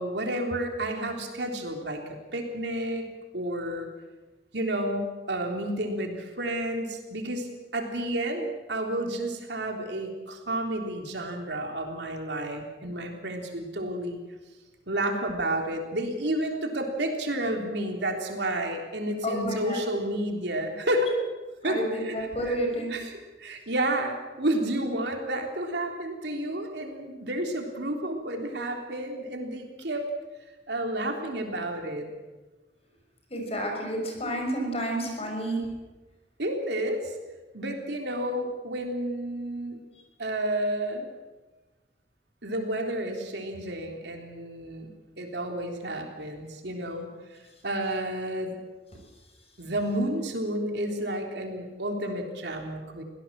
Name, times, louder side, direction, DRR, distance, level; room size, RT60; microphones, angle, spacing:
voice 1, 0.0-3.1 3.3-3.9 4.5-14.2 14.9-21.1 21.6-22.2 22.4-22.6 22.9-23.1 23.4-30.1 30.7-32.1 36.4-37.1 37.5-39.8 40.2-41.1 42.4-44.9 45.2-47.1 47.6-48.6 49.6-53.0, right 1 dB, 70° right, 3 dB, 3.6 m, -31 dB
voice 2, 19.2-19.8 21.6-22.9 33.3-35.6, right 1 dB, 35° left, 2 dB, 5.9 m, -30 dB
24.0 x 17.5 x 7.6 m, 1.2 s
head